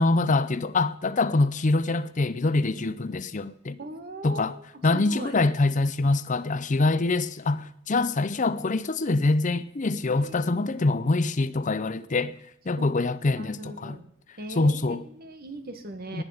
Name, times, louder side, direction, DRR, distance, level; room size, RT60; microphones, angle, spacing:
voice 1, 0.0-3.8 4.2-4.6 4.8-12.3 12.7-14.0 14.6-15.0 16.1-16.2, left 2 dB, 40° left, 0.6 m, -24 dB
voice 2, 3.8-4.6 4.9-5.3 10.1-10.4 12.8-12.9 13.4-14.1 14.4-16.2, right 1 dB, 50° right, 1.9 m, -39 dB
18.5 x 10.0 x 5.1 m
head